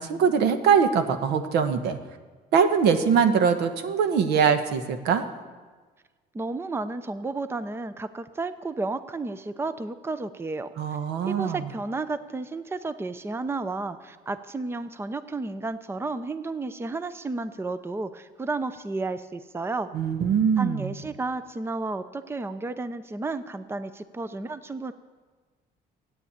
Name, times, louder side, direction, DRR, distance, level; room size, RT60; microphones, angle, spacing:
voice 1, 0.0-2.0 2.5-5.3 10.8-11.6 19.9-20.9, right 6 dB, 85° right, 8 dB, 1.2 m, -22 dB
voice 2, 6.3-10.7 11.3-19.9 20.6-24.9, right 3 dB, 15° right, 12 dB, 0.6 m, -32 dB
12.5 x 9.3 x 8.7 m, 1.4 s
cardioid pair, 110°, 17 cm